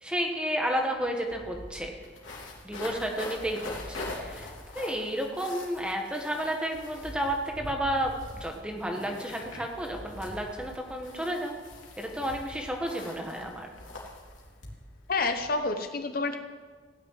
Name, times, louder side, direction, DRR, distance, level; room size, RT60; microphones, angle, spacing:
voice 1, 0.0-1.9 2.6-8.1 8.4-11.6 12.0-13.7, equal, 5° right, 2 dB, 1.6 m, -32 dB
sound 1, 0.7-0.8 1.0-15.5, left 2 dB, 80° left, 3.2 m, -43 dB
voice 2, 15.1-16.4, left 3 dB, 50° left, 7 dB, 0.8 m, -28 dB
16.5 x 6.6 x 9.5 m, 1.5 s
head